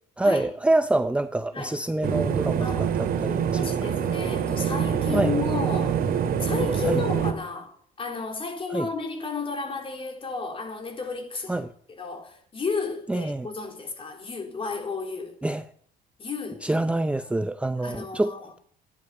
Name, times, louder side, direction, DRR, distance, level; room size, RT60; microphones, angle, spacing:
voice 1, 0.2-3.8 5.1-5.3 6.8-7.0 8.7-8.9 11.5-11.7 13.1-13.5 15.4-15.7 16.6-18.6, right 2 dB, 5° right, 0.6 m, -26 dB
sound 1, 2.0-7.3, right 8 dB, 60° right, 2.3 m, -25 dB
voice 2, 3.5-6.0 6.4-15.4 16.2-16.8 17.8-18.4, left 4 dB, 30° left, 3.7 m, -33 dB
12.5 x 11.0 x 8.2 m
cardioid pair, 110°, 17 cm